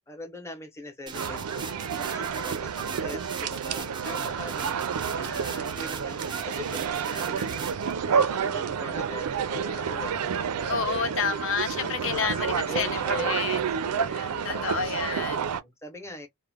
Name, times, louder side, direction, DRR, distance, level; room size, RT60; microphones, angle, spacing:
voice 1, 0.1-7.8 8.1-11.3 12.0-13.4 13.8-14.7 15.4-16.3, left 2 dB, 10° left, 0.8 m, -42 dB
sound 1, 1.1-7.9, right 6 dB, 20° right, 0.3 m, -41 dB
sound 2, 1.1-15.6, right 7 dB, 90° right, 0.4 m, -29 dB
voice 2, 4.0-4.4 10.7-13.6 14.1-15.4, left 5 dB, 60° left, 0.5 m, -30 dB
2.4 x 2.1 x 3.3 m
head